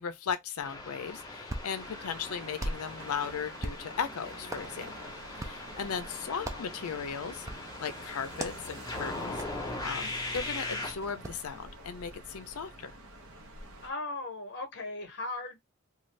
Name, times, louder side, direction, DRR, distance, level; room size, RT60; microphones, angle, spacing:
voice 1, 0.0-5.1 5.4-7.5 7.8-12.9, left 6 dB, 80° left, 0.5 m, -37 dB
sound 1, 0.6-10.9, left 2 dB, 20° left, 0.7 m, -40 dB
Hands, 1.1-11.5, right 1 dB, 15° right, 0.3 m, -44 dB
sound 2, 1.8-13.9, right 1 dB, 75° right, 0.7 m, -48 dB
voice 2, 6.3-6.9 13.8-15.6, left 2 dB, 50° left, 0.8 m, -39 dB
2.5 x 2.3 x 3.2 m
head